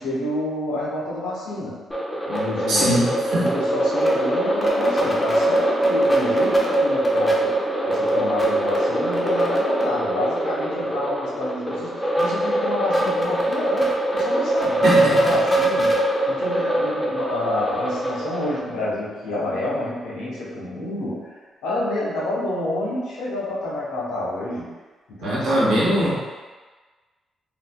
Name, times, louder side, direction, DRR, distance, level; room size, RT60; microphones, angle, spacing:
voice 1, 0.0-1.8 2.3-24.7 25.1-26.1, left 1 dB, 90° left, -6 dB, 0.9 m, -29 dB
sound 1, 1.9-18.6, right 1 dB, 15° left, 0.7 m, -22 dB
voice 2, 2.7-3.5 14.8-15.1 25.2-26.1, right 1 dB, 80° right, -8 dB, 1.2 m, -21 dB
3.8 x 2.4 x 2.2 m, 1.3 s
supercardioid pair, 65°, 0 cm